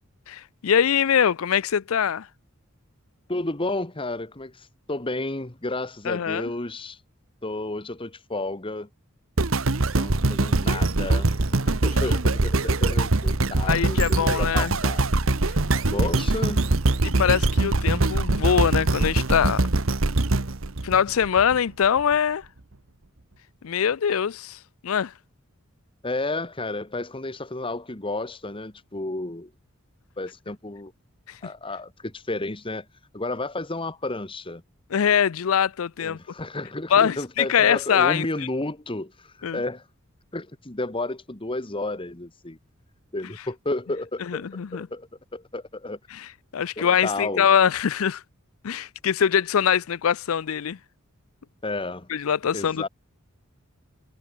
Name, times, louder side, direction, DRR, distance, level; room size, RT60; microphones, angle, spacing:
voice 1, 0.3-2.3 6.0-6.5 12.1-12.2 13.6-14.8 17.0-19.6 20.8-22.4 23.6-25.1 34.9-36.2 36.9-38.3 39.4-39.6 44.2-44.9 46.1-48.2 48.6-50.8 52.1-52.9, left 8 dB, 80° left, 0.5 m, -23 dB
voice 2, 3.3-7.0 7.4-8.9 9.9-11.3 11.7-15.1 15.9-16.7 26.0-29.5 30.2-30.9 31.4-32.8 33.1-34.6 36.0-39.8 40.3-42.6 43.1-46.0 46.8-47.5 51.6-52.1 52.5-52.9, left 2 dB, 25° left, 1.5 m, -32 dB
sound 1, 9.4-21.6 22.1-22.2, right 2 dB, 70° right, 1.3 m, -23 dB
head